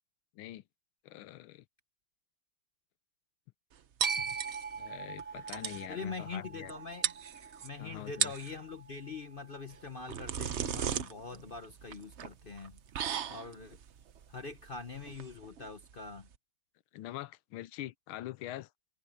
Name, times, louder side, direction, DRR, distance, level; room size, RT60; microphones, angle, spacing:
voice 1, 1.0-1.6 4.2-4.4 4.8-6.7 7.8-8.3 16.9-18.7, left 14 dB, 85° left, 1.5 m, -44 dB
sound 1, 4.0-10.2, right 5 dB, 25° right, 0.9 m, -42 dB
sound 2, 4.0-4.9 5.2-5.3 5.5-5.8 6.7-6.8 7.0-7.7 8.1-8.5 9.7-16.3, right 8 dB, 80° right, 0.6 m, -37 dB
voice 2, 5.9-7.1 7.6-12.8 13.3-13.8 14.3-16.3, left 4 dB, 60° left, 0.5 m, -43 dB
omnidirectional pair, 2.3 m